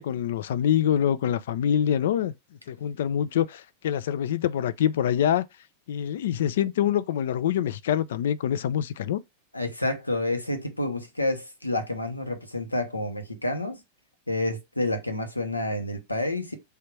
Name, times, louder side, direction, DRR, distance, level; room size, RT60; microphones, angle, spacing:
voice 1, 0.0-2.3 2.7-5.5 5.9-9.2, left 9 dB, 60° left, 0.3 m, -25 dB
voice 2, 9.5-13.8 14.3-16.5, left 2 dB, 85° left, 0.9 m, -29 dB
3.4 x 2.8 x 4.6 m
figure-of-eight pair, 90°, 0 cm